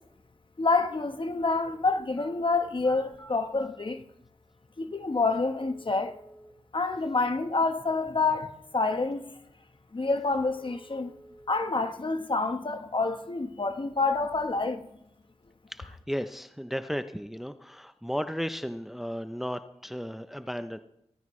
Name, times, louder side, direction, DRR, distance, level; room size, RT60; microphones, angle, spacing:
voice 1, 0.6-4.0 4.8-6.2 6.7-9.2 9.9-11.1 11.5-14.9, left 3 dB, 50° left, 1.2 m, -28 dB
sound 1, 2.0-2.3 2.7-3.7 4.7-4.8 5.5-6.5 10.5-11.5 11.9-12.0 12.6-13.5 13.9-14.6 14.9-15.5, right 1 dB, 25° left, 5.7 m, -53 dB
voice 2, 15.7-20.8, equal, ahead, 0.7 m, -34 dB
18.5 x 13.5 x 3.2 m
wide cardioid pair, 60°, 11 cm